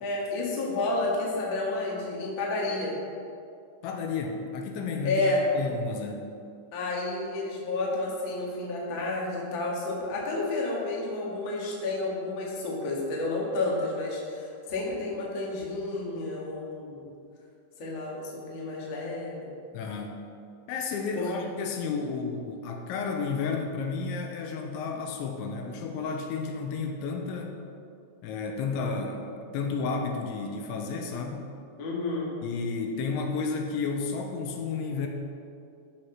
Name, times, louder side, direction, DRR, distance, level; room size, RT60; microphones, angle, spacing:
voice 1, 0.0-2.9 5.0-5.4 6.7-17.1 17.8-19.5 21.1-21.3 31.8-32.3, left 2 dB, 50° left, -4 dB, 1.4 m, -30 dB
voice 2, 3.8-5.2 5.6-6.2 19.7-20.2 20.7-27.6 28.2-31.5 32.4-35.1, left 4 dB, 80° left, 3 dB, 3.2 m, -32 dB
13.5 x 4.9 x 5.7 m, 2.4 s
omnidirectional pair, 5.3 m